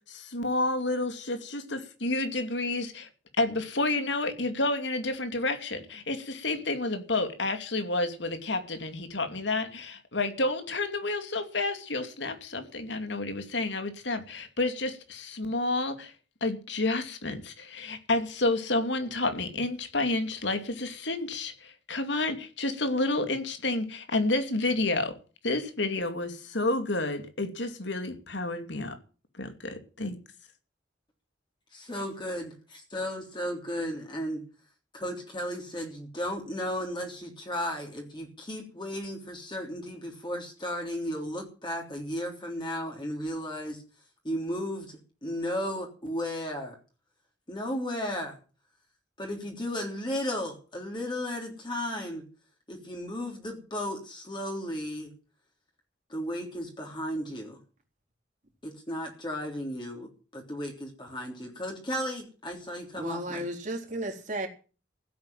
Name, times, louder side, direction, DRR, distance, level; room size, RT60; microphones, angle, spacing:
voice 1, 0.1-3.1 3.4-16.1 16.4-25.2 25.4-29.0 29.3-30.2, left 2 dB, 80° left, 2.6 m, -30 dB
voice 2, 31.7-34.4 34.9-43.8 44.2-46.8 47.5-48.4 49.2-52.2 52.7-55.1 56.1-57.6 58.6-63.5, equal, 25° left, 3.4 m, -34 dB
voice 3, 63.0-64.5, right 1 dB, 40° right, 3.8 m, -34 dB
16.0 x 8.6 x 9.1 m
head